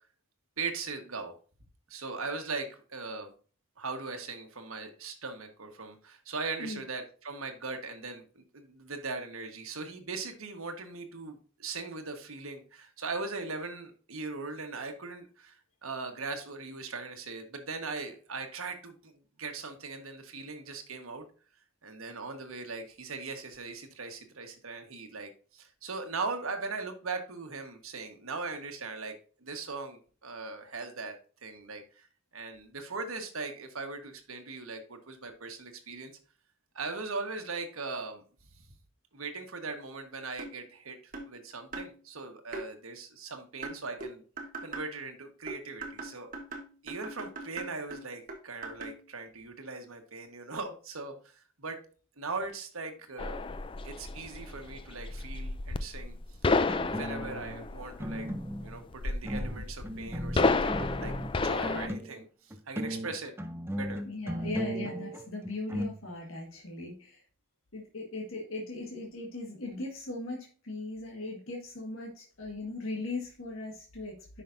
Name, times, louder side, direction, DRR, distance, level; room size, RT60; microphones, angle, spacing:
voice 1, 0.6-1.4 1.9-3.3 3.8-15.6 15.8-19.1 19.4-21.2 21.8-29.1 29.4-31.1 31.4-31.8 32.3-36.1 36.7-38.2 39.1-41.0 41.3-44.2 44.6-46.3 46.8-51.1 51.6-51.8 52.2-53.4 53.8-56.1 57.0-58.3 58.6-62.2 62.7-63.3 63.7-64.0, right 4 dB, 85° right, 5 dB, 1.4 m, -39 dB
sound 1, 40.4-40.6 41.1-41.3 41.7-41.9 42.5-42.7 43.6-44.9 45.5-49.0, right 3 dB, 40° right, 1.3 m, -41 dB
sound 2, 53.2-61.9, left 3 dB, 25° left, 0.3 m, -31 dB
sound 3, 56.6-57.6 58.0-58.8 59.2-62.3 62.5-65.9, equal, 10° right, 0.6 m, -36 dB
voice 2, 64.0-67.2 67.7-74.4, left 2 dB, 75° left, 0 dB, 1.7 m, -39 dB
10.0 x 5.6 x 2.6 m, 0.39 s
head